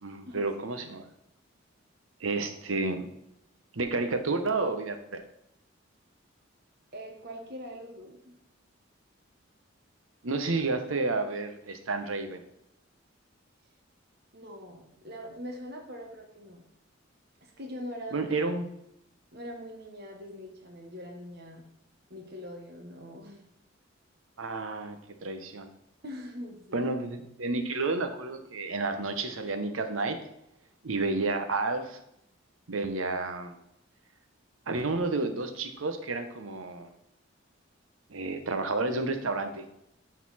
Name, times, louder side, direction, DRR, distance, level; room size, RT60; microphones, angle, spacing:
voice 1, 0.0-1.0 2.2-3.1 3.7-5.2 10.2-12.4 18.1-18.7 24.4-25.7 26.7-30.2 30.8-32.0 32.7-33.5 34.7-36.9 38.1-39.6, right 3 dB, 90° right, 7 dB, 1.0 m, -31 dB
voice 2, 6.9-8.3 14.3-16.7 17.4-18.3 19.3-21.6 22.1-23.5 26.0-26.8, equal, 55° right, 1 dB, 1.4 m, -42 dB
12.0 x 4.2 x 4.2 m, 0.81 s
head